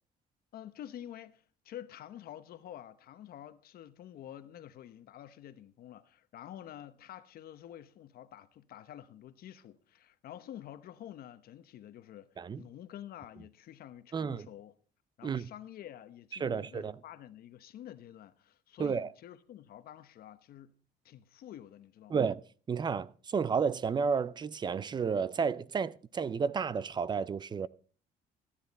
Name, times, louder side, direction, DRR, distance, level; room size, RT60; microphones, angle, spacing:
voice 1, 0.5-12.3 12.6-14.7 15.2-20.7 21.0-22.2, left 11 dB, 65° left, 0.9 m, -48 dB
voice 2, 14.1-14.5 15.2-15.5 16.4-16.9 18.8-19.1 22.1-22.4 22.7-27.7, right 6 dB, 25° right, 0.5 m, -31 dB
14.5 x 10.0 x 4.1 m
cardioid pair, 110°, 17 cm